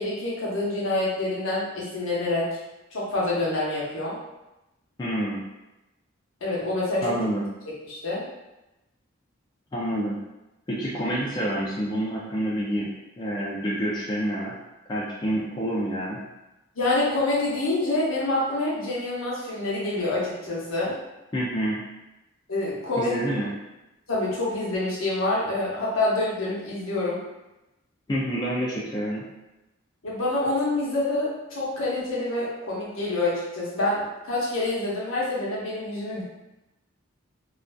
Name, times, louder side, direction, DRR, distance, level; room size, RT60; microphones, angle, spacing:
voice 1, 0.0-2.6 2.9-4.1 6.4-7.2 7.8-8.2 16.7-20.9 22.5-23.3 24.1-27.2 30.0-36.2, left 2 dB, 75° left, -6 dB, 0.8 m, -27 dB
voice 2, 5.0-5.4 7.0-7.4 9.7-10.2 10.7-12.9 13.2-14.5 14.9-16.2 21.3-21.8 23.0-23.5 28.1-29.2, equal, 20° left, -6 dB, 0.3 m, -28 dB
2.4 x 2.3 x 2.2 m, 0.98 s
head